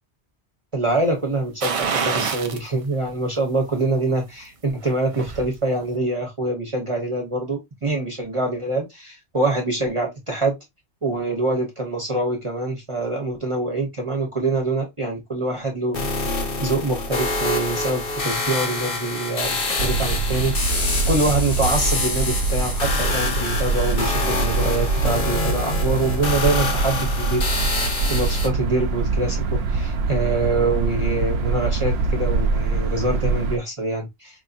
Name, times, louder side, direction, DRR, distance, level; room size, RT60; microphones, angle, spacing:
voice 1, 0.7-10.5 11.0-16.3 16.6-20.7 21.1-27.4 27.7-34.4, right 2 dB, 30° right, 0.9 m, -25 dB
sound 1, 1.6-2.7 3.1-3.2 4.7-5.5 5.8-5.9, right 5 dB, 45° right, 0.4 m, -26 dB
sound 2, 15.9-28.5, left 3 dB, 55° left, 1.1 m, -26 dB
sound 3, 19.8-33.6, right 4 dB, 65° right, 0.8 m, -24 dB
4.4 x 2.8 x 2.4 m
omnidirectional pair, 1.2 m